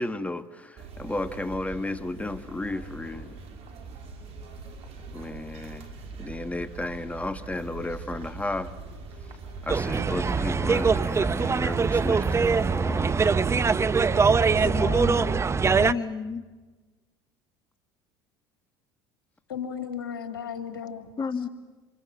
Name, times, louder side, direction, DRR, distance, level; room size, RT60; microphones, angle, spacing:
voice 1, 0.0-3.4 5.1-5.9 6.2-8.7 9.6-13.3, left 2 dB, 10° left, 12 dB, 1.8 m, -33 dB
sound 1, 0.8-13.6, right 4 dB, 60° right, 5.0 m, -41 dB
sound 2, 9.7-15.9, right 5 dB, 25° right, 0.9 m, -23 dB
voice 2, 14.0-14.8 19.5-21.1, left 7 dB, 85° left, 7 dB, 3.2 m, -36 dB
voice 3, 14.6-16.4 21.2-21.5, left 5 dB, 35° left, 11 dB, 2.1 m, -32 dB
27.0 x 24.5 x 7.4 m, 1.3 s
hypercardioid pair, 75°, 12 cm